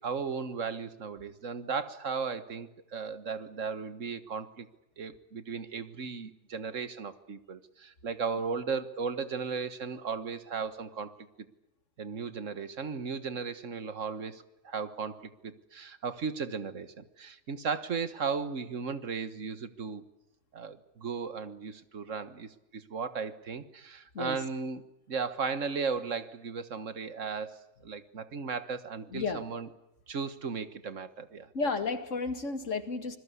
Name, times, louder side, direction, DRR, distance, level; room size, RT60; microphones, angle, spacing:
voice 1, 0.0-4.7 5.0-11.2 12.0-20.0 20.5-24.8 25.1-29.7 30.1-31.5, right 5 dB, 85° right, 12 dB, 1.8 m, -36 dB
voice 2, 29.1-29.4 31.5-33.2, left 4 dB, 80° left, 9 dB, 2.4 m, -32 dB
26.5 x 21.0 x 8.4 m, 0.87 s
omnidirectional pair, 1.3 m